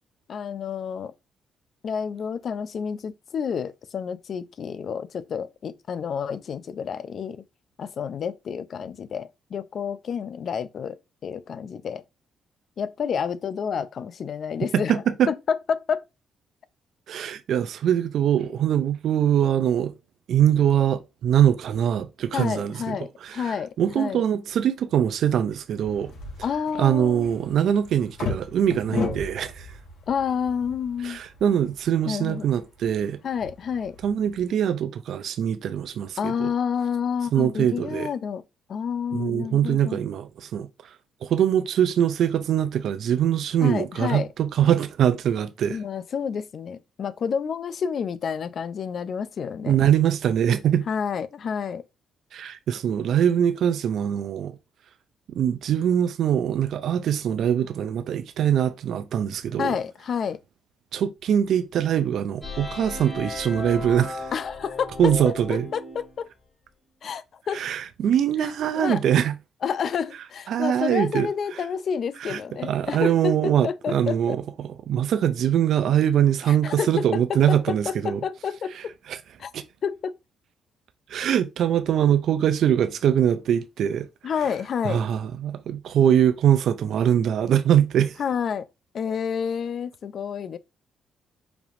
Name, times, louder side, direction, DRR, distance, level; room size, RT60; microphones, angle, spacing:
voice 1, 0.3-1.1 1.8-7.4 7.8-12.0 12.8-16.0 22.3-24.2 26.4-27.3 30.1-31.2 32.1-32.4 33.2-34.0 36.2-38.4 38.7-40.0 43.6-44.3 45.7-49.8 50.9-51.8 59.6-60.4 64.3-64.9 65.7-66.3 67.0-67.6 68.4-69.0 69.6-74.4 76.5-78.9 79.4-79.5 79.8-80.1 84.2-85.1 88.2-88.7 88.9-90.6, left 7 dB, 55° left, 0.4 m, -29 dB
voice 2, 14.7-15.3 17.1-19.9 20.3-26.1 26.8-29.8 31.0-33.2 34.0-36.5 37.3-38.1 39.1-40.9 41.2-45.8 49.7-50.8 52.3-54.6 55.4-59.7 60.9-64.3 65.0-65.7 67.5-69.4 70.5-71.6 72.2-78.2 78.7-79.2 79.5-79.6 81.1-84.1 84.8-88.2, right 9 dB, 70° right, 0.4 m, -23 dB
sound 1, 25.8-34.5, left 4 dB, 75° left, 1.7 m, -37 dB
sound 2, 62.4-66.2, left 3 dB, 20° left, 2.1 m, -35 dB
4.9 x 3.4 x 2.5 m
cardioid pair, 90°, 0 cm